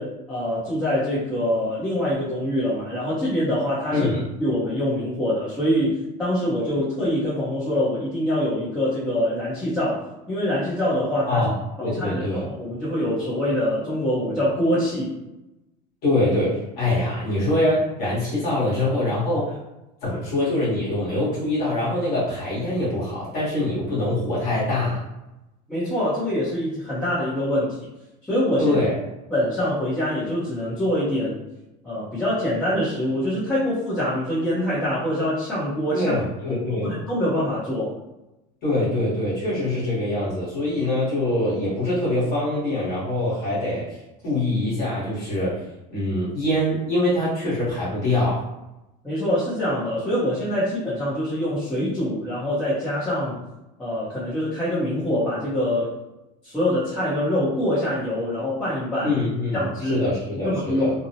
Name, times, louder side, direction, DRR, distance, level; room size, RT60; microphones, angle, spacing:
voice 1, 0.0-4.1 4.4-11.5 11.8-15.1 25.7-27.8 28.3-28.8 29.3-31.4 31.8-36.2 36.5-37.9 49.0-53.4 53.8-55.9 56.4-59.1 59.5-60.0 60.4-60.9, left 1 dB, 5° left, -13 dB, 0.7 m, -24 dB
voice 2, 3.9-4.2 11.3-12.4 16.0-19.6 20.0-25.0 28.6-28.9 35.9-37.0 38.6-43.9 44.2-45.6 45.9-48.4 59.0-60.9, left 1 dB, 45° left, -8 dB, 1.1 m, -24 dB
2.7 x 2.0 x 2.7 m, 0.95 s
cardioid pair, 165°, 21 cm